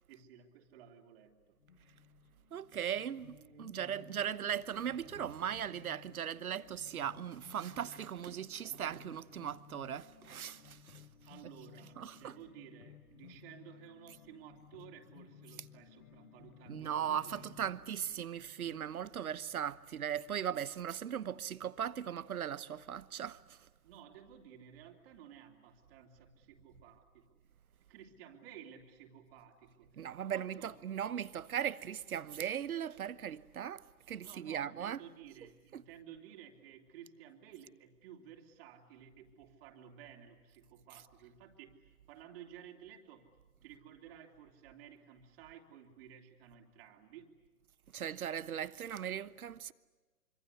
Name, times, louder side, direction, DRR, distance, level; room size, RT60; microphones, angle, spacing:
voice 1, 0.1-1.6 3.3-3.8 11.3-17.6 23.8-27.4 27.9-30.7 34.2-43.4 43.6-47.3, right 9 dB, 40° right, 3.2 m, -55 dB
sound 1, 1.6-20.7, left 9 dB, 65° left, 1.5 m, -59 dB
voice 2, 2.5-11.0 12.0-12.3 16.7-23.6 30.0-35.0 35.7-35.8 47.9-49.7, right 9 dB, 70° right, 1.1 m, -38 dB
26.0 x 25.5 x 8.3 m
hypercardioid pair, 130°, 45 cm